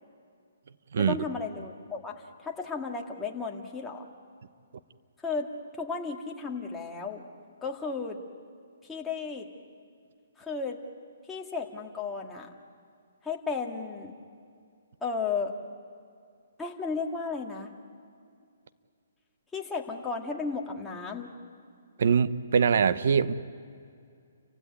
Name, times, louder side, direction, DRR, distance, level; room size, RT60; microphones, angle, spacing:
voice 1, 1.0-4.1 5.2-7.2 7.6-8.2 8.9-9.5 10.4-10.8 11.3-12.5 13.2-14.1 15.0-15.5 16.6-17.7 19.5-21.3, left 4 dB, 10° left, -1 dB, 2.0 m, -34 dB
voice 2, 22.0-23.3, right 6 dB, 65° right, 13 dB, 0.9 m, -23 dB
30.0 x 16.0 x 9.6 m, 2.3 s
hypercardioid pair, 150°, 0 cm